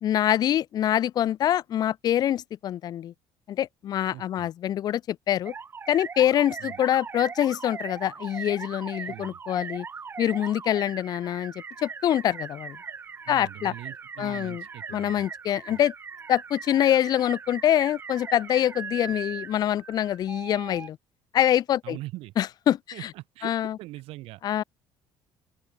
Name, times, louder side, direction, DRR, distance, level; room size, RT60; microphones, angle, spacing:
voice 1, 0.0-3.1 3.5-5.5 5.9-9.9 10.2-11.5 11.8-12.8 13.3-13.7 14.2-14.6 14.9-15.9 16.3-21.0 21.3-22.0 22.4-22.8 23.4-23.8 24.4-24.6, left 11 dB, 40° left, 0.6 m, -25 dB
voice 2, 4.1-4.5 6.6-6.8 9.0-9.4 13.2-15.3 15.7-15.8 21.8-22.3 22.9-24.4, right 18 dB, 75° right, 2.4 m, -42 dB
sound 1, 5.4-20.9, right 5 dB, 20° right, 1.1 m, -39 dB
open air
cardioid pair, 155°, 10 cm